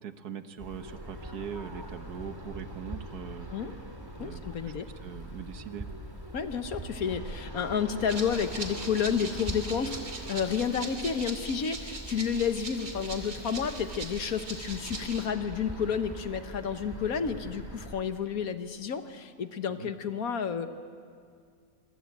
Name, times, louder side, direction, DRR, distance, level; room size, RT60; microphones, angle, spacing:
voice 1, 0.0-3.5 4.2-4.7 5.0-5.9 19.7-19.9, right 7 dB, 75° right, 10 dB, 1.6 m, -41 dB
sound 1, 0.6-18.0, right 1 dB, 15° right, 2.8 m, -42 dB
voice 2, 4.2-4.9 6.3-20.7, left 7 dB, 60° left, 9 dB, 1.6 m, -31 dB
Rattle (instrument), 8.1-15.3, right 3 dB, 55° right, 3.0 m, -41 dB
25.5 x 24.0 x 8.8 m, 2.2 s
omnidirectional pair, 1.7 m